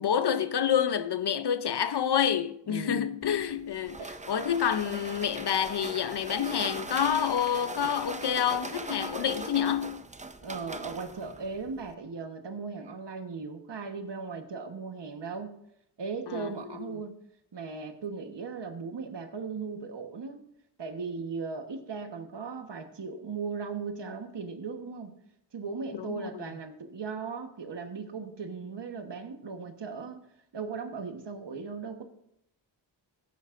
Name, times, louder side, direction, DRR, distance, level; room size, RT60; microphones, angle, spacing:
voice 1, 0.0-4.0 4.3-10.0 16.3-16.6 16.9-17.0 26.0-26.4, left 8 dB, 60° left, 0.7 m, -28 dB
voice 2, 2.7-3.1 4.0-4.2 10.4-15.5 16.0-17.1 17.5-20.4 20.8-25.1 25.5-30.2 30.5-32.0, right 5 dB, 60° right, 1.3 m, -37 dB
sound 1, 3.2-11.9, right 3 dB, 15° right, 0.5 m, -40 dB
16.5 x 9.4 x 2.6 m
wide cardioid pair, 85°, 47 cm